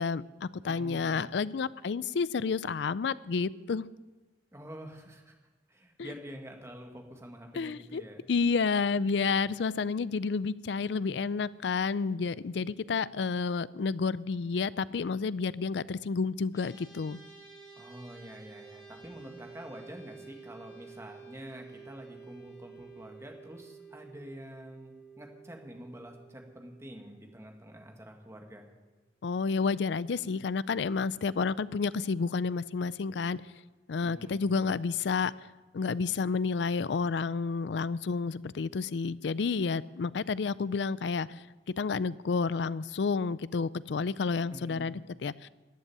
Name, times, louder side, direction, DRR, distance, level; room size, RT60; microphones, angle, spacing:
voice 1, 0.0-3.9 6.0-6.1 7.5-8.0 8.3-17.2 29.2-33.4 33.9-35.3 35.7-41.4 41.8-45.5, left 5 dB, 65° left, 18 dB, 0.4 m, -30 dB
voice 2, 0.6-1.3 4.5-5.4 5.7-8.2 17.8-28.7 34.0-34.6 44.5-45.0, equal, 15° right, 3 dB, 1.9 m, -47 dB
sound 1, 16.5-28.0, right 5 dB, 20° left, 2.5 m, -52 dB
14.0 x 8.2 x 9.9 m, 1.2 s
head